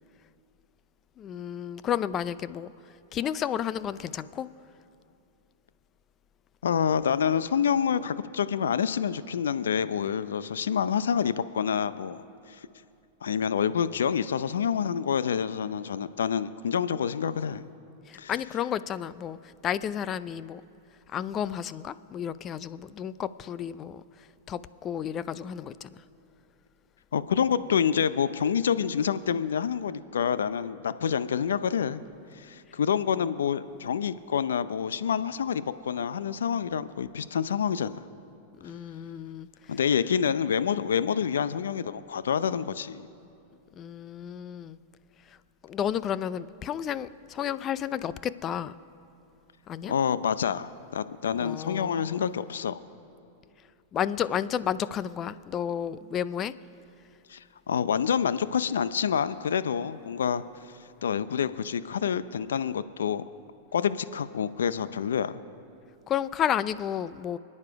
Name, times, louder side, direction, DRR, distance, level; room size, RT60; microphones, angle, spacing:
voice 1, 1.2-2.7 3.1-4.5 18.1-19.4 19.6-20.6 21.1-24.0 24.5-25.9 38.6-39.5 43.8-44.8 45.6-48.7 49.7-49.9 51.3-52.2 53.9-56.5 66.1-67.4, left 9 dB, 30° left, 16 dB, 0.6 m, -32 dB
voice 2, 6.6-12.7 13.2-17.6 18.2-18.3 27.1-32.0 32.3-38.0 39.7-43.1 49.9-52.8 57.3-60.7 61.0-63.2 63.7-65.4, left 7 dB, 80° left, 14 dB, 0.5 m, -27 dB
28.5 x 9.7 x 4.7 m, 2.6 s
hypercardioid pair, 105°, 0 cm